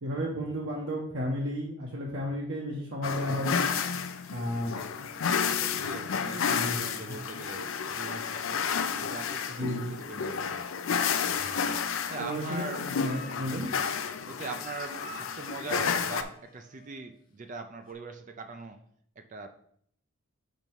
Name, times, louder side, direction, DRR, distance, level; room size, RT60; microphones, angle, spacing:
voice 1, 0.0-3.6 4.3-4.8 6.4-6.8 7.1-7.2 9.6-9.8 12.2-13.7, equal, 60° right, -3 dB, 1.1 m, -33 dB
sound 1, 3.0-16.2, left 6 dB, 70° left, 0.5 m, -31 dB
voice 2, 5.4-10.7 12.1-12.8 13.3-13.8 14.3-18.8 19.2-19.5, right 3 dB, 35° right, 7 dB, 0.4 m, -42 dB
sound 2, 11.2-17.1 17.8-17.9, left 1 dB, 40° left, 1.0 m, -50 dB
5.3 x 5.2 x 4.5 m, 0.65 s
head